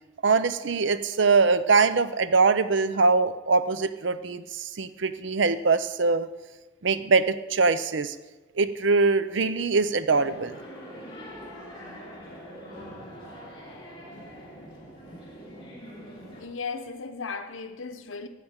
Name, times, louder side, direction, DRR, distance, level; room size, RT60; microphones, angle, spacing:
voice 1, 0.2-6.3 6.8-8.2 8.6-10.6, right 4 dB, 60° right, 0.6 m, -23 dB
sound 1, 10.1-16.4, equal, 25° left, 3.0 m, -43 dB
voice 2, 16.4-18.3, left 4 dB, 75° left, 0.9 m, -36 dB
12.5 x 5.1 x 8.9 m
head